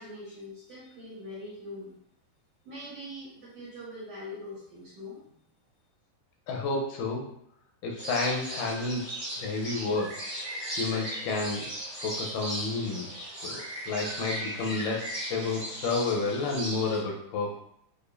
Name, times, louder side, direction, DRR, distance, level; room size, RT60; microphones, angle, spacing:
voice 1, 0.0-1.9 2.6-5.3, left 1 dB, 65° right, -8 dB, 1.7 m, -42 dB
voice 2, 6.5-7.3 7.8-10.2 10.5-11.7 12.0-13.1 13.4-17.6, left 3 dB, 80° left, 0 dB, 2.2 m, -31 dB
sound 1, 8.0-17.0, right 1 dB, 35° right, 0.5 m, -37 dB
6.5 x 2.5 x 2.5 m, 0.68 s
omnidirectional pair, 4.0 m